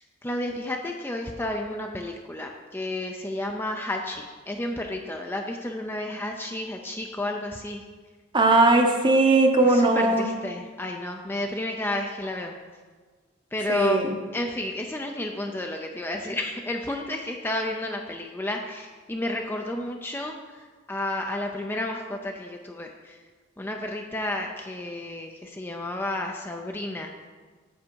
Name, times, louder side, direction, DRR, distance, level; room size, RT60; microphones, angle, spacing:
voice 1, 0.2-7.8 9.7-12.5 13.5-20.4 20.9-23.2 23.6-27.2, left 1 dB, 10° left, 2 dB, 0.5 m, -31 dB
voice 2, 8.3-10.3 13.7-14.2, right 2 dB, 25° right, 4 dB, 0.8 m, -19 dB
8.1 x 7.5 x 4.6 m, 1.4 s
head